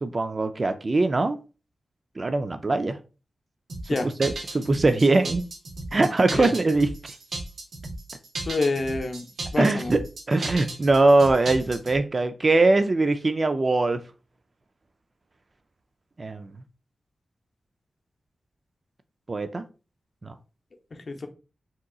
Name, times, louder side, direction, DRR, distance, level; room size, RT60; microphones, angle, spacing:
voice 1, 0.0-1.4 2.2-3.0 4.2-5.4 5.9-6.9 9.6-10.0 10.3-14.0 16.2-16.5 19.3-19.6 20.2-20.3, right 2 dB, 50° right, 0.3 m, -21 dB
sound 1, 3.7-12.0, right 2 dB, 80° right, 0.7 m, -35 dB
voice 2, 8.5-9.3 9.5-9.9 20.9-21.3, left 3 dB, 60° left, 0.6 m, -27 dB
3.6 x 2.8 x 2.3 m
cardioid pair, 45°, 0 cm